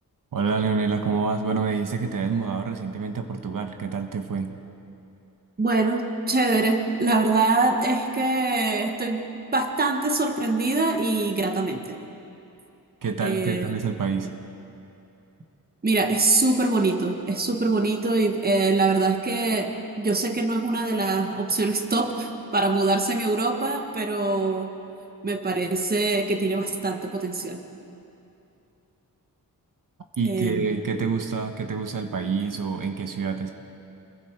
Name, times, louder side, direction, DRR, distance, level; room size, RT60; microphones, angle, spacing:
voice 1, 0.3-4.6 13.0-14.3 30.2-33.5, right 5 dB, 65° right, 5 dB, 1.2 m, -27 dB
voice 2, 5.6-9.3 9.5-12.0 13.2-13.7 15.8-24.7 25.2-27.6 30.2-30.8, right 3 dB, 25° right, 4 dB, 1.4 m, -24 dB
29.0 x 22.0 x 4.7 m, 2.8 s
wide cardioid pair, 170°, 36 cm